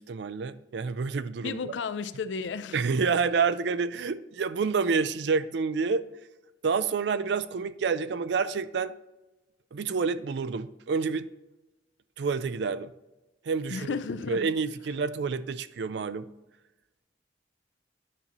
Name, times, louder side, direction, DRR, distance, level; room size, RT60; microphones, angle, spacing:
voice 1, 0.0-1.7 2.7-6.0 6.6-8.9 9.7-11.3 12.2-12.9 13.4-13.9 14.3-16.3, right 5 dB, 70° right, 0.4 m, -28 dB
voice 2, 1.4-2.8 13.7-14.5, left 5 dB, 80° left, 0.4 m, -33 dB
9.6 x 5.4 x 2.9 m
head